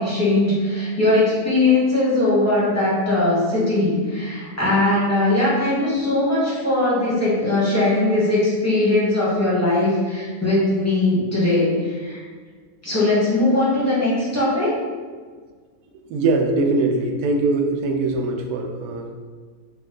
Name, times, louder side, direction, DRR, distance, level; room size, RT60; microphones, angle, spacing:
voice 1, 0.0-12.2 12.8-14.7, left 2 dB, 10° left, -8 dB, 1.1 m, -20 dB
voice 2, 16.1-19.1, right 3 dB, 85° right, 3 dB, 1.1 m, -21 dB
4.1 x 2.5 x 3.8 m, 1.5 s
omnidirectional pair, 1.6 m